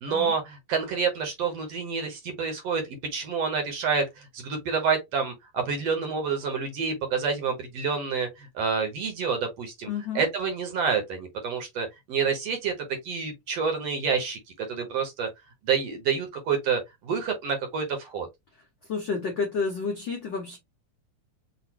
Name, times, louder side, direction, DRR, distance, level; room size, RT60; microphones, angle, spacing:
voice 1, 0.0-9.9 10.2-12.7 13.0-15.3 15.6-18.3, right 5 dB, 60° right, 1.9 m, -28 dB
voice 2, 9.9-10.3 18.9-20.6, left 5 dB, 90° left, 1.0 m, -30 dB
6.1 x 2.6 x 2.9 m
omnidirectional pair, 3.7 m